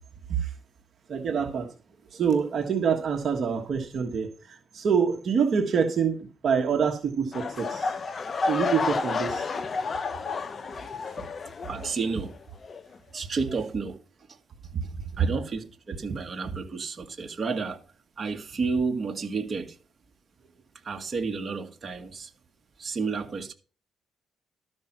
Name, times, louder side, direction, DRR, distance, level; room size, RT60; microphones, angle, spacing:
voice 1, 1.1-1.7 2.1-7.9 8.5-9.5 14.7-14.8 15.2-15.3, right 6 dB, 55° right, 1.4 m, -26 dB
sound 1, 7.3-12.3 12.6-13.0 13.5-13.6, left 4 dB, 40° left, 0.8 m, -31 dB
voice 2, 11.7-12.3 13.1-14.0 15.2-17.8 18.2-19.8 20.8-22.3 22.8-23.5, right 4 dB, 40° right, 1.9 m, -31 dB
12.5 x 5.4 x 6.0 m
cardioid pair, 90°, 0 cm